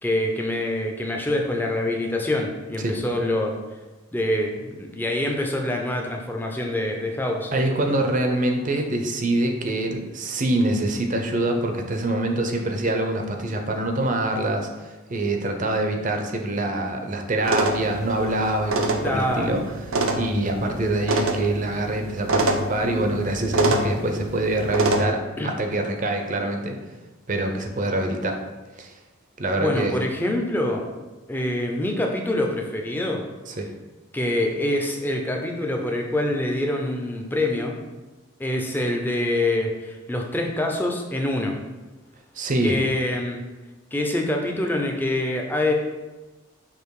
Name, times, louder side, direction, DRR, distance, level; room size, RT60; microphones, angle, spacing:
voice 1, 0.0-3.6 4.1-7.5 19.0-19.6 25.4-25.5 29.6-30.8 31.3-33.2 34.1-37.7 38.4-41.6 42.6-43.4 43.9-45.7, left 1 dB, 10° left, 1 dB, 0.6 m, -25 dB
voice 2, 7.5-19.6 20.1-26.8 27.3-28.4 28.8-28.9 29.4-30.0 33.5-33.7 42.3-42.8, right 1 dB, 40° right, 4 dB, 0.6 m, -25 dB
sound 1, 17.4-25.0, right 2 dB, 80° right, 0.7 m, -26 dB
6.7 x 2.9 x 4.8 m, 1.2 s
head